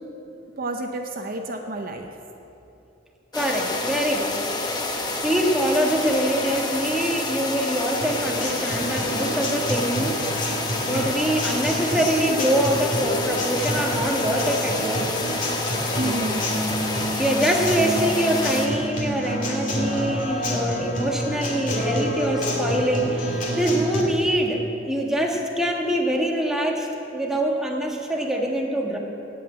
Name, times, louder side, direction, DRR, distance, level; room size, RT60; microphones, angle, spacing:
voice 1, 0.6-2.1 16.0-16.4, right 2 dB, 50° right, 4 dB, 0.8 m, -30 dB
sound 1, 3.3-18.7, left 2 dB, 20° left, 1.0 m, -28 dB
voice 2, 3.3-4.4 5.2-10.2 10.8-15.1 17.2-29.0, right 1 dB, 5° right, -1 dB, 1.4 m, -24 dB
Acoustic guitar, 8.0-24.0, equal, 45° left, 2.4 m, -28 dB
16.5 x 5.5 x 8.9 m, 2.9 s
head